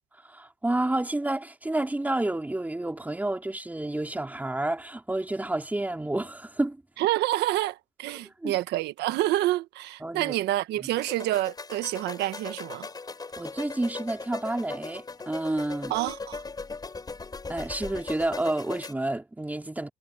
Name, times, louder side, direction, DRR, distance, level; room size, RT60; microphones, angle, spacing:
voice 1, 0.3-6.8 8.4-8.6 10.0-10.3 13.4-15.9 17.5-19.9, right 2 dB, 10° right, 3.8 m, -30 dB
voice 2, 7.0-12.9 15.9-16.4, right 15 dB, 85° right, 1.3 m, -28 dB
sound 1, 10.9-18.9, left 4 dB, 25° left, 7.4 m, -39 dB
cardioid pair, 110°, 17 cm